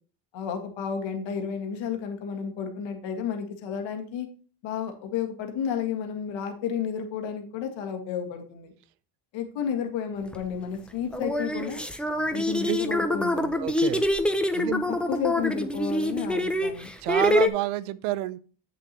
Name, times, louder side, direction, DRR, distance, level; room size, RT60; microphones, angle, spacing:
voice 1, 0.3-4.3 4.6-8.7 9.3-11.8 12.3-13.6 14.7-16.9, left 7 dB, 70° left, 4 dB, 1.8 m, -32 dB
sound 1, 10.3-10.4 11.1-17.5, left 1 dB, ahead, 0.7 m, -26 dB
voice 2, 13.6-14.0 14.5-14.7 17.0-18.4, right 16 dB, 90° right, 17 dB, 0.7 m, -28 dB
7.7 x 7.2 x 2.9 m, 0.39 s
supercardioid pair, 90°, 47 cm